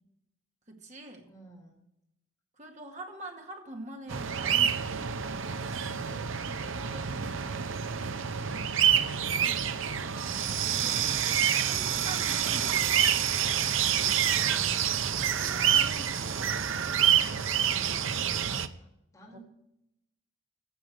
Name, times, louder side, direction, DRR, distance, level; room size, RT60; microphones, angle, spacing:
voice 1, 0.7-1.3 2.6-5.2 9.2-11.1 11.6-13.6 15.4-16.8 19.3-19.4, right 2 dB, 35° right, 2 dB, 2.1 m, -45 dB
voice 2, 1.2-1.8 5.5-8.7 13.8-14.8 17.0-19.4, right 1 dB, 15° left, -3 dB, 4.1 m, -53 dB
sound 1, 4.1-18.7, right 9 dB, 75° right, 0.7 m, -27 dB
15.5 x 6.3 x 7.9 m, 0.82 s
head